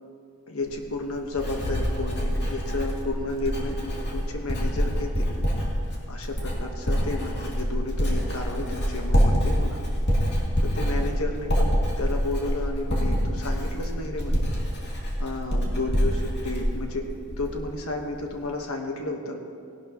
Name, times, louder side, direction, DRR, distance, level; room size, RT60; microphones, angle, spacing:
voice 1, 0.5-3.8 4.1-5.3 6.1-9.8 10.6-14.5 15.2-17.1 17.4-19.4, left 2 dB, 70° left, 2 dB, 1.3 m, -32 dB
Writing, 0.6-17.7 18.0-18.4, equal, 50° left, 2.4 m, -26 dB
17.5 x 11.5 x 3.0 m, 2.3 s
head